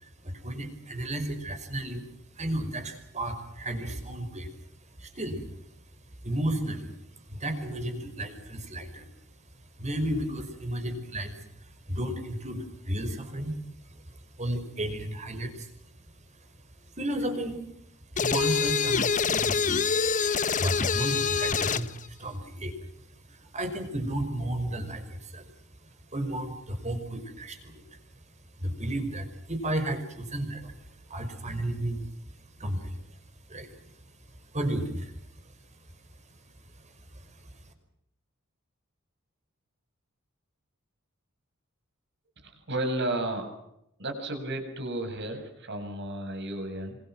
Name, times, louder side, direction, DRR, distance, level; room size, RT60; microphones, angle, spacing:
voice 1, 0.0-2.0 2.4-4.5 5.0-5.5 6.2-6.9 7.3-9.1 9.8-13.6 13.9-14.0 14.4-15.7 17.0-17.6 18.1-19.7 20.4-22.7 23.3-25.5 26.1-27.8 28.6-30.7 31.1-32.0 32.6-33.0 33.5-33.7 34.5-35.1 37.4-37.5, right 1 dB, 35° right, 7 dB, 5.5 m, -33 dB
sound 1, 18.2-21.9, left 6 dB, 35° left, 1.0 m, -26 dB
voice 2, 42.4-43.5 44.0-47.0, right 1 dB, 55° right, 6 dB, 7.1 m, -33 dB
26.5 x 26.5 x 6.2 m, 0.79 s
head